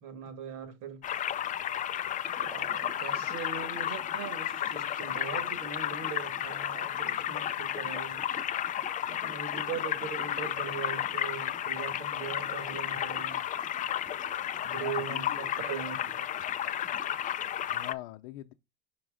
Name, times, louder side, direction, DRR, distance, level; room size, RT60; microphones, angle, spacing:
voice 1, 0.0-1.1 2.4-8.3 9.1-13.4 14.6-16.3, right 7 dB, 55° right, 1.9 m, -40 dB
sound 1, 1.0-17.9, left 11 dB, 20° left, 0.4 m, -33 dB
sound 2, 2.2-17.3, right 4 dB, 15° right, 1.0 m, -55 dB
voice 2, 14.8-15.6 17.7-18.5, left 16 dB, 65° left, 0.6 m, -43 dB
6.0 x 4.8 x 3.6 m
supercardioid pair, 105°, 37 cm